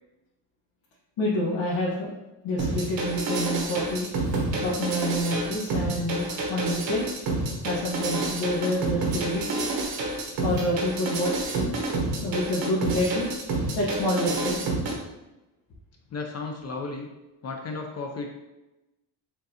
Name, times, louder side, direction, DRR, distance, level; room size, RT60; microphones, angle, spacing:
voice 1, 1.2-2.1 2.4-4.1 4.5-7.1 7.6-9.5 10.4-11.3 12.2-13.3 13.8-14.6, left 1 dB, 85° left, -7 dB, 1.2 m, -27 dB
sound 1, 2.6-14.9, right 2 dB, 70° right, 1.1 m, -29 dB
voice 2, 16.1-17.1 17.4-18.3, left 3 dB, 35° left, 2 dB, 0.5 m, -34 dB
6.4 x 2.6 x 2.7 m, 0.99 s
cardioid pair, 145°, 44 cm